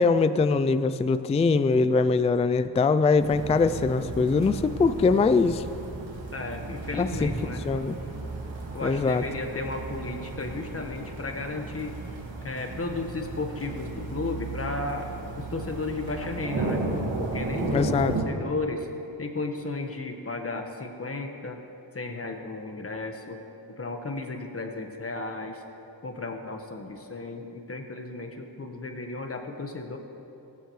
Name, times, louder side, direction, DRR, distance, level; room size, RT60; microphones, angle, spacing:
voice 1, 0.0-5.7 7.0-7.3 7.6-8.0 8.8-9.2 17.7-18.1, left 4 dB, 15° left, 12 dB, 0.3 m, -22 dB
sound 1, 3.2-18.2, right 3 dB, 85° right, 2.2 m, -34 dB
voice 2, 6.3-7.6 8.7-11.9 12.4-16.8 17.2-18.9 19.2-21.6 21.9-23.4 23.8-25.6 26.0-30.0, left 3 dB, 30° left, 4 dB, 1.3 m, -34 dB
18.0 x 15.0 x 3.2 m, 2.8 s
wide cardioid pair, 105°, 44 cm